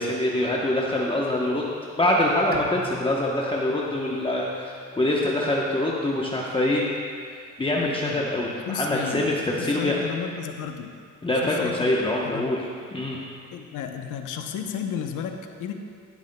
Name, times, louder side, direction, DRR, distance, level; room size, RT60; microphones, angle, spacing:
voice 1, 0.0-1.7 2.0-6.8 7.2-10.0 11.2-13.2, left 1 dB, 15° left, -3 dB, 0.9 m, -25 dB
Bowed string instrument, 2.5-5.7, right 2 dB, 30° right, 0.9 m, -41 dB
voice 2, 8.7-9.3 9.6-10.9 11.4-11.9 12.2-12.5 13.5-15.7, left 8 dB, 85° left, 5 dB, 0.8 m, -33 dB
16.0 x 7.9 x 2.2 m, 2.2 s
cardioid pair, 90°, 30 cm